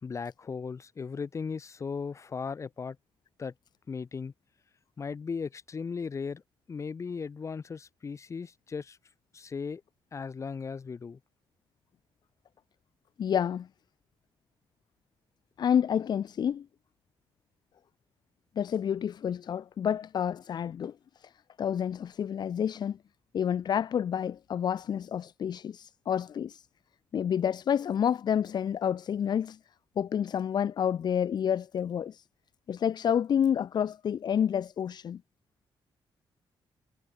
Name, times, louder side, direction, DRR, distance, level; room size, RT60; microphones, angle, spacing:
voice 1, 0.0-3.0 3.4-3.5 3.9-4.3 5.0-6.4 6.7-9.0 9.3-9.8 10.1-11.2, left 5 dB, 35° left, 2.3 m, -37 dB
voice 2, 13.2-13.7 15.6-16.7 18.6-21.3 21.6-23.0 23.3-26.7 27.1-29.6 30.0-32.2 32.7-35.2, left 8 dB, 50° left, 0.9 m, -29 dB
cardioid pair, 140°, 9 cm